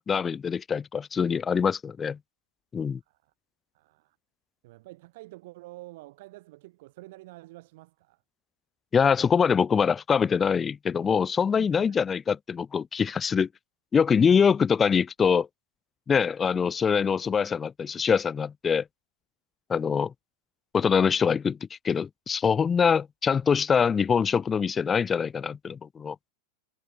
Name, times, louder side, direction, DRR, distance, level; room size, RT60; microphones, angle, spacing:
voice 1, 0.0-2.2 2.7-3.0 8.9-13.5 13.9-15.5 16.1-18.8 19.7-20.1 20.7-21.6 21.8-26.2, left 6 dB, 15° left, 0.3 m, -24 dB
voice 2, 3.7-4.2 4.6-8.2 11.6-12.1, right 20 dB, 50° right, 1.8 m, -48 dB
supercardioid pair, 170°, 0 cm